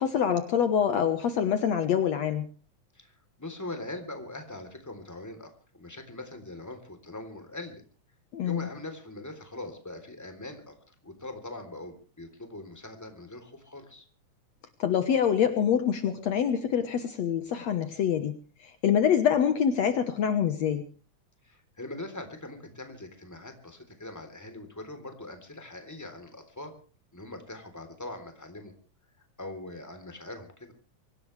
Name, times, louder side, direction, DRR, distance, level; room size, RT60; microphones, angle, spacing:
voice 1, 0.0-2.5 8.3-8.7 14.8-18.3 18.6-20.8, left 8 dB, 65° left, 8 dB, 2.3 m, -25 dB
voice 2, 2.9-7.8 8.4-14.1 21.4-26.8 27.1-28.7 29.4-30.7, left 2 dB, 5° left, 6 dB, 3.2 m, -42 dB
24.5 x 17.5 x 3.3 m, 0.40 s
omnidirectional pair, 3.6 m